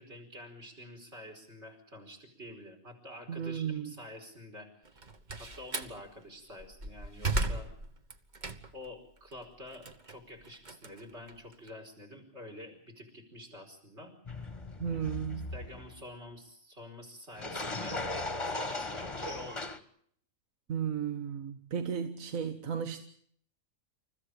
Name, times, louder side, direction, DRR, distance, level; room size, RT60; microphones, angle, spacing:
voice 1, 0.0-5.1 5.4-7.7 8.7-14.1 15.5-18.0 18.5-19.7, left 1 dB, 50° right, 5.3 m, -48 dB
voice 2, 3.3-3.9 14.8-15.5 20.7-23.0, right 7 dB, 70° right, 1.5 m, -34 dB
Slam, 4.8-6.0 6.5-8.9 9.3-11.7, right 2 dB, 35° right, 1.3 m, -36 dB
sound 1, 14.3-16.0 17.4-19.8, left 2 dB, 20° left, 1.3 m, -37 dB
28.5 x 15.0 x 8.7 m
omnidirectional pair, 1.5 m